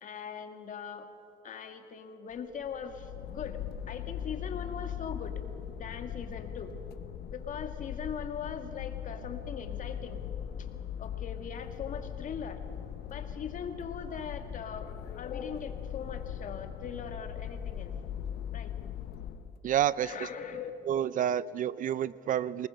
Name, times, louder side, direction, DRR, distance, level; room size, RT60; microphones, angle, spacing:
voice 1, 0.0-1.1 1.4-5.4 5.8-6.7 7.3-10.2 10.6-10.7 11.0-12.6 13.0-17.9 18.5-18.7 20.0-20.7, left 7 dB, 50° left, 6 dB, 2.1 m, -40 dB
sound 1, 2.3-19.6, left 9 dB, 70° left, 0.9 m, -40 dB
voice 2, 19.6-20.1 20.9-22.7, right 10 dB, 50° right, 18 dB, 0.5 m, -29 dB
25.5 x 20.0 x 6.4 m, 2.8 s
cardioid pair, 110°, 17 cm